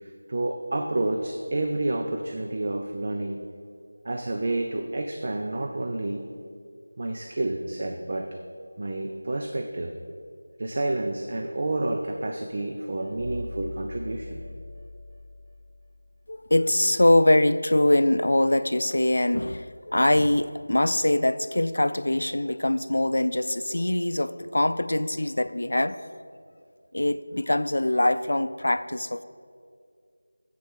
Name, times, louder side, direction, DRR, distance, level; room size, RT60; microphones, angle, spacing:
voice 1, 0.0-3.4 4.0-6.3 7.0-8.4 8.8-9.9 10.6-14.4, right 2 dB, 45° right, 4 dB, 0.6 m, -29 dB
sound 1, 13.0-16.2, left 1 dB, 90° right, 2.0 m, -40 dB
voice 2, 16.3-26.1 26.9-29.2, left 1 dB, 75° left, 13 dB, 0.4 m, -23 dB
7.6 x 7.2 x 7.4 m, 2.2 s
figure-of-eight pair, 170°, 0 cm